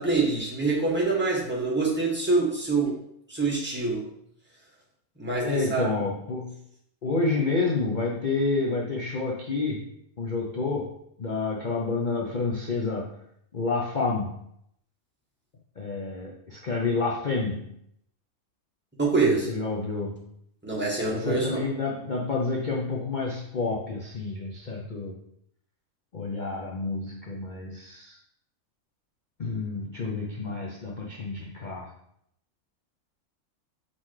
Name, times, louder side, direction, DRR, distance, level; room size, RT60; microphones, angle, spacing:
voice 1, 0.0-2.9 3.3-4.0 5.2-5.9 19.0-19.5 20.6-21.6, right 3 dB, 5° right, -5 dB, 1.7 m, -25 dB
voice 2, 5.4-6.6 7.0-9.9 10.2-10.9 11.2-13.2 13.5-14.4 15.8-17.7 19.3-20.3 21.0-25.2 26.1-28.2 29.4-31.9, left 3 dB, 40° left, -2 dB, 0.8 m, -29 dB
5.8 x 4.2 x 4.8 m, 0.73 s
omnidirectional pair, 1.6 m